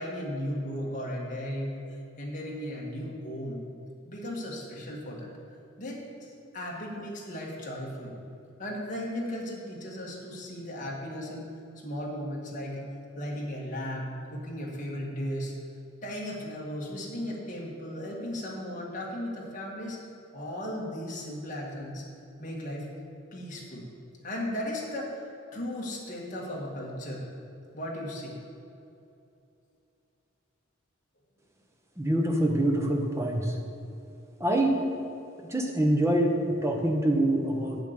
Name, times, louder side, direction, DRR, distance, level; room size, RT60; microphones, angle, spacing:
voice 1, 0.0-3.6 4.0-5.3 5.8-8.2 8.6-11.5 11.8-12.8 13.2-15.5 16.0-20.0 20.3-22.0 22.4-22.9 23.3-23.8 24.2-25.2 25.5-27.2 27.7-28.3, equal, 40° left, -3 dB, 1.7 m, -36 dB
voice 2, 32.0-33.6 34.4-34.8 35.5-37.8, right 1 dB, 15° right, 1 dB, 0.9 m, -25 dB
8.2 x 7.0 x 6.6 m, 2.7 s
head